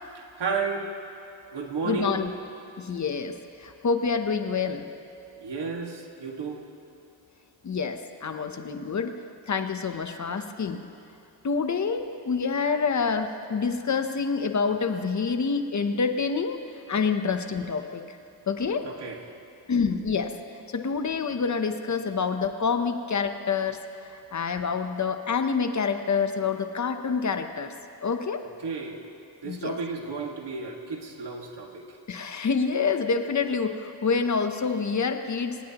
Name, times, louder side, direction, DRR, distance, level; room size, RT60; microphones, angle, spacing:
voice 1, 0.1-0.9 1.5-2.2 5.4-6.6 18.8-19.2 28.4-29.1 29.4-32.0, right 4 dB, 65° right, 1 dB, 1.9 m, -32 dB
voice 2, 1.8-2.3 2.8-4.8 7.6-9.2 9.5-10.8 11.4-16.6 16.9-18.2 18.5-18.8 19.7-20.3 20.7-23.8 24.1-27.7 28.0-28.4 29.4-29.7 32.1-35.6, left 5 dB, 40° left, 7 dB, 0.8 m, -27 dB
26.0 x 17.5 x 3.0 m, 2.7 s
wide cardioid pair, 150°, 44 cm